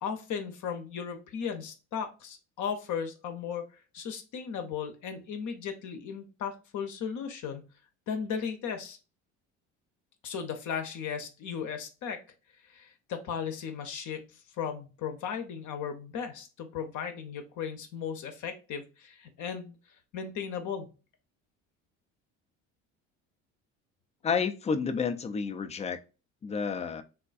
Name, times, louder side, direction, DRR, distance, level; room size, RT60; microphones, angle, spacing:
voice 1, 0.0-3.7 3.9-7.7 8.1-9.0 10.2-12.2 12.6-19.8 20.1-20.9, left 7 dB, 55° left, 0.8 m, -36 dB
voice 2, 24.2-26.0 26.4-27.0, left 5 dB, 20° left, 0.4 m, -30 dB
3.6 x 2.2 x 2.4 m
hypercardioid pair, 70°, 36 cm